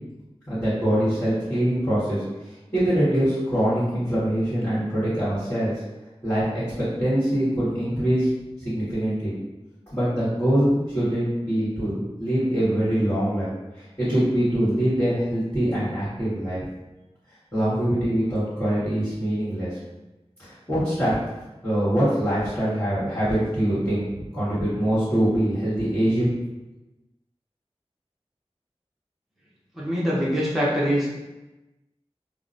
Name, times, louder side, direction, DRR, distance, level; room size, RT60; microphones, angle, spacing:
voice 1, 0.5-5.7 6.2-6.4 6.8-8.3 8.6-9.3 9.9-13.5 13.8-16.6 17.5-19.8 20.4-21.1 21.6-26.3, right 1 dB, 25° left, -14 dB, 1.4 m, -23 dB
voice 2, 29.8-31.2, equal, ahead, -7 dB, 0.7 m, -23 dB
2.8 x 2.1 x 2.5 m, 1.1 s
wide cardioid pair, 45°, 11 cm